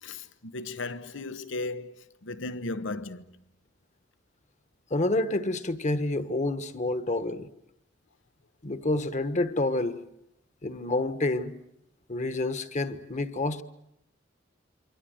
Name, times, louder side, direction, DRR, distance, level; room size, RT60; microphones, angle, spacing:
voice 1, 0.0-3.3, left 2 dB, 80° left, 1.1 m, -36 dB
voice 2, 4.9-7.5 8.6-10.0 10.6-11.5 12.1-13.6, left 2 dB, 40° left, 1.3 m, -28 dB
28.0 x 24.0 x 7.9 m
head